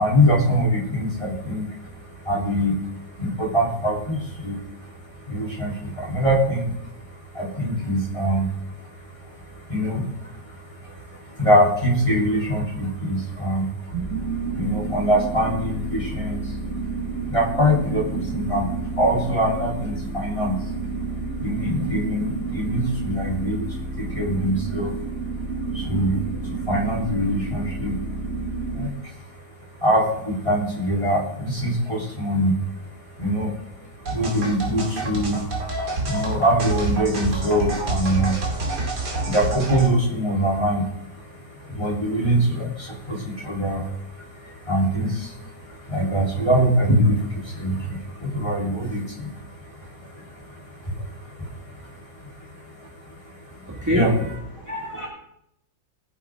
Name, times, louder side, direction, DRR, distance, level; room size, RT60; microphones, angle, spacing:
voice 1, 0.0-54.1 54.5-54.7, equal, 15° left, -4 dB, 3.7 m, -25 dB
sound 1, 13.9-28.9, right 4 dB, 35° right, 2.0 m, -30 dB
sound 2, 34.1-39.9, right 2 dB, 60° right, 2.9 m, -28 dB
voice 2, 53.7-54.4 54.7-55.1, equal, 10° right, -2 dB, 2.1 m, -25 dB
19.5 x 9.9 x 3.8 m, 0.77 s
omnidirectional pair, 2.1 m